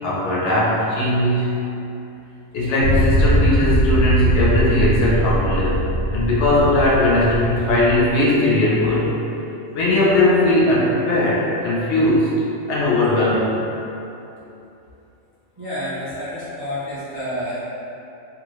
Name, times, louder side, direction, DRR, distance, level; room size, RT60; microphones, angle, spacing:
voice 1, 0.0-1.6 2.5-9.1 9.7-12.3 12.7-13.5, left 1 dB, 65° left, -7 dB, 0.8 m, -18 dB
sound 1, 2.8-8.1, right 1 dB, 70° right, 0.9 m, -21 dB
voice 2, 15.6-17.6, equal, 30° right, -12 dB, 0.4 m, -29 dB
2.9 x 2.5 x 2.9 m, 2.9 s
omnidirectional pair, 1.4 m